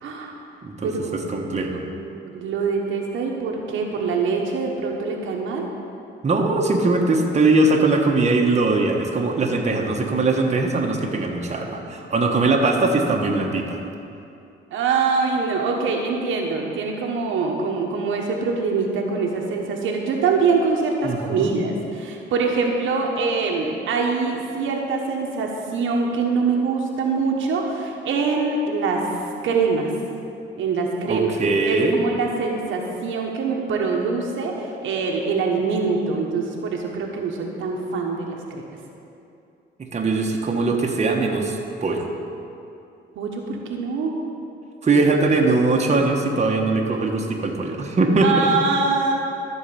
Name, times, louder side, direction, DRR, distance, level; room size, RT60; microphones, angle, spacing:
voice 1, 0.0-0.3 0.8-5.7 14.7-29.0 29.4-29.9 30.6-31.3 31.7-38.7 43.2-44.1 48.2-49.1, right 4 dB, 80° right, 0 dB, 1.3 m, -24 dB
voice 2, 0.6-1.8 6.2-13.8 21.0-21.6 31.1-32.0 39.9-42.1 44.8-48.5, right 3 dB, 35° right, 0 dB, 1.3 m, -21 dB
13.0 x 4.7 x 7.0 m, 2.7 s
cardioid pair, 90°, 20 cm